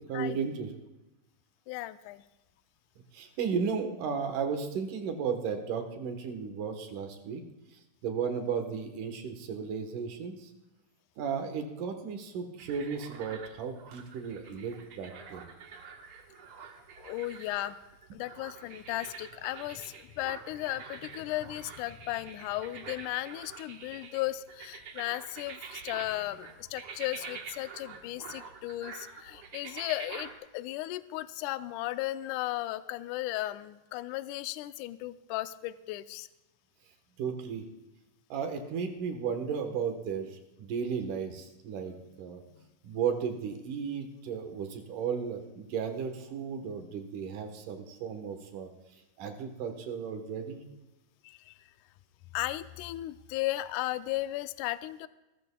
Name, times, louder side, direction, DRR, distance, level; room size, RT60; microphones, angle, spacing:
voice 1, 0.1-0.7 3.1-7.4 8.0-10.5 11.2-15.5 37.2-37.7 38.3-42.4 42.8-48.7 49.2-50.6, right 6 dB, 70° right, 5 dB, 2.8 m, -34 dB
voice 2, 1.7-2.2 17.0-17.8 18.1-36.3 51.2-51.5 52.3-55.1, left 16 dB, 80° left, 13 dB, 1.9 m, -35 dB
sound 1, 12.6-30.3, right 5 dB, 55° right, 1.6 m, -47 dB
26.5 x 14.0 x 2.3 m, 1.0 s
omnidirectional pair, 3.9 m